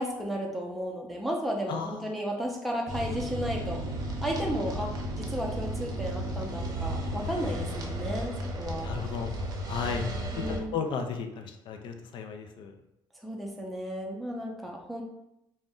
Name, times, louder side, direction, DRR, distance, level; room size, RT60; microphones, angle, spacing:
voice 1, 0.0-3.8 4.2-4.9 5.2-8.9 10.3-10.7 13.2-15.0, equal, ahead, -1 dB, 0.5 m, -33 dB
voice 2, 1.7-2.1 8.8-9.3 9.7-10.0 10.4-12.7, left 6 dB, 55° left, 5 dB, 0.4 m, -34 dB
sound 1, 2.9-10.6, equal, 40° right, 0.6 m, -34 dB
2.5 x 2.1 x 3.6 m, 0.83 s
cardioid pair, 95°, 10 cm